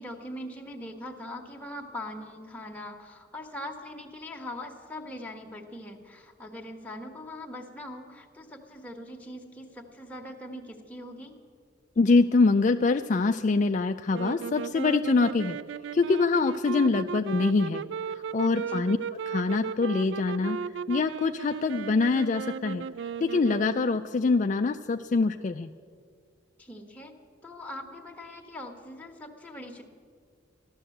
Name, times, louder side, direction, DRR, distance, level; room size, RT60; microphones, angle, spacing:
voice 1, 0.0-11.3 18.6-18.9 26.6-27.1 27.4-29.8, left 1 dB, 10° left, 0 dB, 1.5 m, -41 dB
voice 2, 12.0-15.6 15.9-17.8 18.1-19.0 19.3-20.6 20.9-22.8 23.2-25.7, left 3 dB, 40° left, 7 dB, 0.4 m, -24 dB
sound 1, 14.1-24.1, right 6 dB, 70° right, 0.3 m, -36 dB
15.0 x 12.0 x 7.9 m, 2.1 s
head